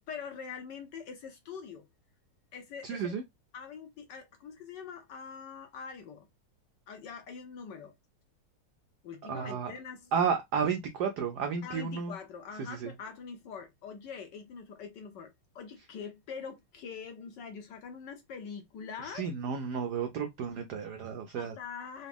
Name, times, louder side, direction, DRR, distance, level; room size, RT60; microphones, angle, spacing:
voice 1, 0.0-1.9 2.5-3.1 3.5-6.3 6.9-7.9 9.0-10.1 11.6-19.2 21.3-22.1, left 6 dB, 70° left, 1.1 m, -44 dB
voice 2, 2.8-3.2 9.3-9.7 10.1-12.1 12.6-12.9 19.0-21.5, right 6 dB, 90° right, 0.8 m, -32 dB
4.0 x 2.3 x 3.4 m
omnidirectional pair, 2.4 m